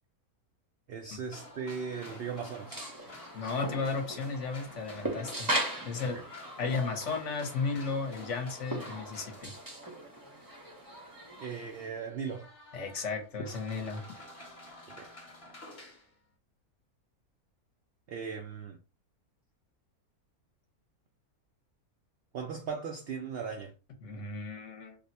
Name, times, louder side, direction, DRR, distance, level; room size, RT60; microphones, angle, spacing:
voice 1, 0.9-2.8 6.0-6.1 11.4-12.5 15.0-15.1 18.1-18.8 22.3-23.7, right 6 dB, 85° right, 0.5 m, -38 dB
sound 1, 1.3-9.9 10.5-10.6 11.1-16.1, left 1 dB, 30° left, 0.7 m, -51 dB
sound 2, 1.9-11.9, right 1 dB, 25° right, 0.4 m, -39 dB
voice 2, 3.3-5.5 5.9-6.2 6.6-9.5 12.7-14.0 24.0-25.0, left 4 dB, 60° left, 1.0 m, -34 dB
2.7 x 2.1 x 4.0 m
omnidirectional pair, 1.6 m